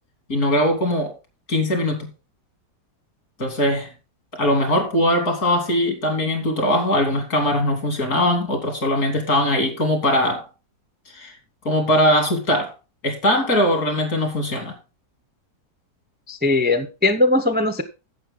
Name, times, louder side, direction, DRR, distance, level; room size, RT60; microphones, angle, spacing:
voice 1, 0.3-1.1 1.5-2.1 3.4-3.9 4.3-10.5 11.1-11.4 11.7-12.7 13.0-14.7, left 1 dB, 60° left, 3.4 m, -21 dB
voice 2, 16.3-17.8, left 2 dB, 10° right, 0.5 m, -19 dB
11.0 x 8.2 x 3.7 m
omnidirectional pair, 1.8 m